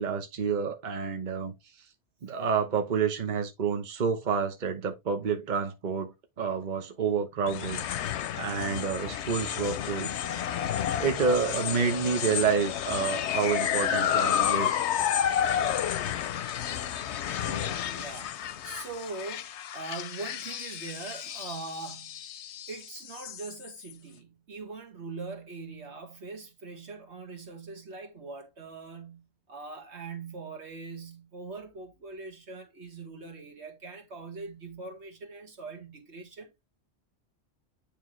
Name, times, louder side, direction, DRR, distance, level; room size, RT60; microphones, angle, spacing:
voice 1, 0.0-1.5 2.2-10.3 11.0-14.8, right 6 dB, 45° right, 1.0 m, -29 dB
sound 1, 7.5-23.9, left 10 dB, 85° left, 0.9 m, -31 dB
voice 2, 17.2-18.3 18.6-22.3 22.7-36.5, right 3 dB, 80° right, 1.9 m, -42 dB
9.5 x 3.4 x 3.1 m
omnidirectional pair, 1.1 m